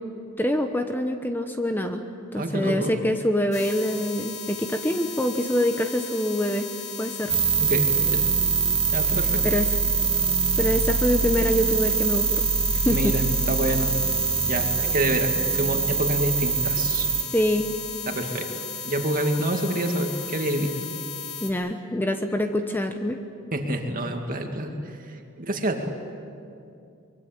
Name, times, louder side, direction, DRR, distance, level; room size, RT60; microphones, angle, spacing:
voice 1, 0.4-2.1 2.3-6.7 7.0-7.3 9.4-9.7 10.6-12.4 12.8-13.2 17.3-17.7 21.4-23.2, equal, 10° left, 6 dB, 1.0 m, -25 dB
voice 2, 2.3-2.9 7.6-8.3 8.9-9.4 12.9-13.9 14.4-17.1 18.1-18.5 18.8-20.7 23.5-25.9, right 1 dB, 40° right, 3 dB, 2.4 m, -27 dB
sound 1, 3.5-21.5, left 5 dB, 35° left, 2.7 m, -35 dB
sound 2, 7.3-17.2, right 6 dB, 25° right, 1.1 m, -24 dB
24.0 x 23.0 x 8.9 m, 2.6 s
head